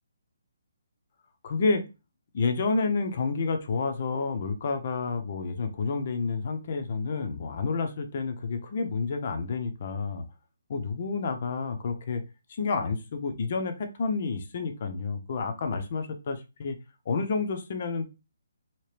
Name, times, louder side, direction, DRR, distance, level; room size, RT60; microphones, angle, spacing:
voice 1, 1.4-1.8 2.3-10.2 10.7-12.2 12.5-16.8 17.1-18.1, left 4 dB, 45° left, 6 dB, 0.7 m, -29 dB
2.9 x 2.9 x 3.3 m, 0.28 s
hypercardioid pair, 155°, 0 cm